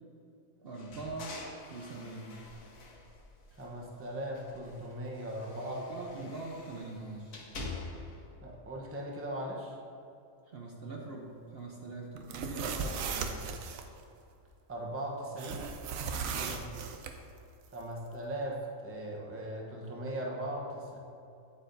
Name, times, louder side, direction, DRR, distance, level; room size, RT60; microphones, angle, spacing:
voice 1, 0.6-1.3 1.7-2.4 5.6-7.4 10.5-13.4 16.3-16.6, right 3 dB, 55° right, -1 dB, 0.9 m, -43 dB
sound 1, 0.7-3.9 4.3-8.2, left 3 dB, 80° left, 1.4 m, -46 dB
voice 2, 3.6-5.8 6.1-6.3 8.4-9.8 14.7-15.7 17.7-21.0, right 1 dB, 10° right, -2 dB, 0.7 m, -39 dB
sound 2, 12.2-13.8 15.4-17.1, right 5 dB, 85° right, 1.0 m, -36 dB
8.8 x 8.4 x 2.6 m, 2.6 s
omnidirectional pair, 1.4 m